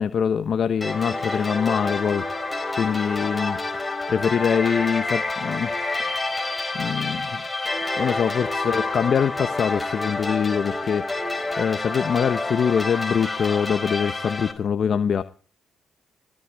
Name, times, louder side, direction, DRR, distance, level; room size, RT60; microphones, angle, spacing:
voice 1, 0.0-2.3 2.8-3.6 4.1-5.7 6.0-6.1 6.8-7.4 8.0-11.1 11.6-15.2, left 7 dB, 55° left, 1.0 m, -24 dB
sound 1, 0.8-14.5, left 2 dB, 10° left, 4.5 m, -28 dB
20.5 x 13.0 x 4.8 m
cardioid pair, 90°, 0 cm